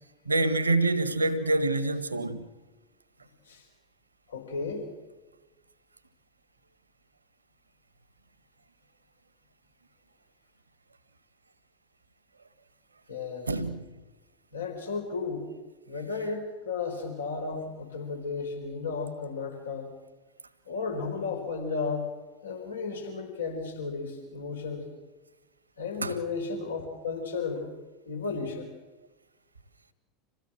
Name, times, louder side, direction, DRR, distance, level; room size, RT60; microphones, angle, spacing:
voice 1, 0.2-2.5 13.5-13.8 26.0-26.2, right 2 dB, 85° right, 1.5 m, -26 dB
voice 2, 4.3-4.9 13.1-13.5 14.5-15.5 15.9-19.9 20.7-22.1 22.4-24.9 25.8-27.7 28.1-28.7, left 4 dB, 80° left, 4.5 m, -34 dB
27.0 x 16.5 x 7.8 m
figure-of-eight pair, 80°, 0 cm